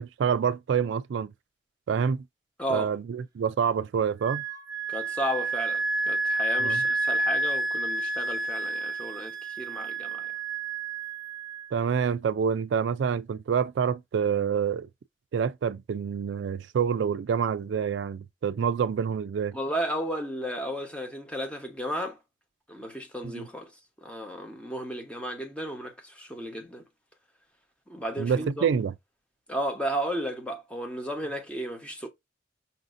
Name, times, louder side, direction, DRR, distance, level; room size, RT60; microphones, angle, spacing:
voice 1, 0.0-1.3 1.9-2.2 2.7-4.4 6.6-6.8 11.7-14.9 15.3-19.6 23.3-23.4 28.2-28.9, right 7 dB, 70° right, 0.3 m, -27 dB
voice 2, 2.6-2.9 4.9-10.3 19.5-22.2 22.7-23.7 24.0-26.8 27.9-28.7 29.5-32.1, equal, 5° left, 1.0 m, -34 dB
Wind instrument woodwind instrument, 4.2-11.7, right 2 dB, 20° right, 0.9 m, -30 dB
5.6 x 2.7 x 2.5 m
head